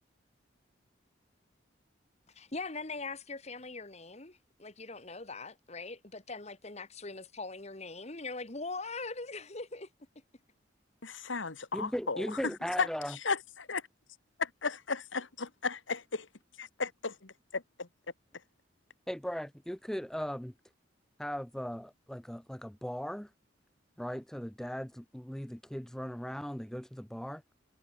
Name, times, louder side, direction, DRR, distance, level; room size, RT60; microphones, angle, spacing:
voice 1, 2.3-9.9, left 3 dB, 35° left, 1.7 m, -41 dB
voice 2, 11.0-12.4 12.8-13.9 14.4-16.3 16.6-17.9, left 4 dB, 85° left, 1.8 m, -35 dB
voice 3, 11.7-13.2 19.1-20.5 21.2-23.3 24.0-27.4, equal, 5° left, 0.5 m, -38 dB
head